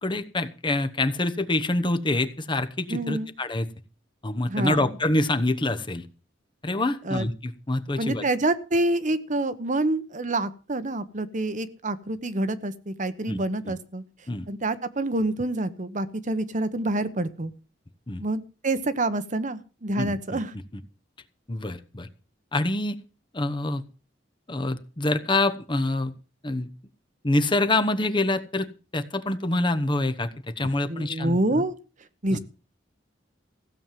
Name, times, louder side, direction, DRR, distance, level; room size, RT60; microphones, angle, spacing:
voice 1, 0.0-3.7 4.2-6.0 6.6-8.2 13.3-13.4 13.6-13.7 14.3-14.5 18.1-18.2 19.9-20.4 21.5-22.1 22.5-23.0 23.3-23.8 24.5-26.1 26.4-26.7 27.2-28.7 28.9-30.3 30.6-31.6 32.3-32.4, left 2 dB, 25° left, 9 dB, 1.0 m, -26 dB
voice 2, 2.9-3.3 4.5-4.9 7.0-7.3 8.0-14.0 14.5-17.5 18.2-20.5 30.9-31.7 32.2-32.4, right 2 dB, 45° right, 12 dB, 1.1 m, -27 dB
15.5 x 7.3 x 7.5 m, 0.35 s
head